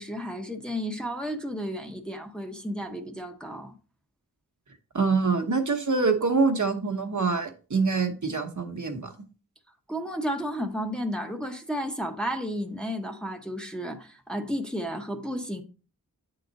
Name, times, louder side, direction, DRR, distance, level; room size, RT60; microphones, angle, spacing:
voice 1, 0.0-3.7 9.9-15.6, equal, 5° left, 0.8 m, -32 dB
voice 2, 4.9-9.1, right 4 dB, 60° right, 1.0 m, -25 dB
8.9 x 3.9 x 3.9 m
wide cardioid pair, 60°, 34 cm